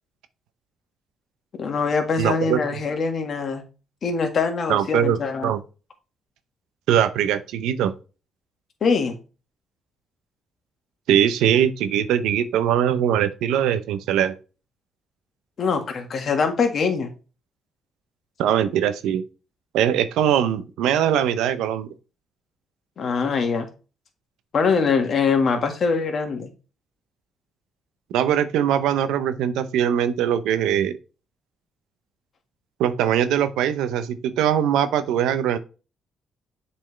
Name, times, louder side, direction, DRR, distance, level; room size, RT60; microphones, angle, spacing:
voice 1, 1.6-3.6 4.0-5.5 8.8-9.2 15.6-17.1 23.0-23.7 24.5-26.5, left 5 dB, 55° left, 1.7 m, -23 dB
voice 2, 2.2-2.6 4.7-5.6 6.9-7.9 11.1-14.4 18.4-19.2 19.7-21.9 28.1-31.0 32.8-35.6, right 10 dB, 90° right, 0.6 m, -21 dB
7.6 x 4.3 x 3.3 m
cardioid pair, 90°, 0 cm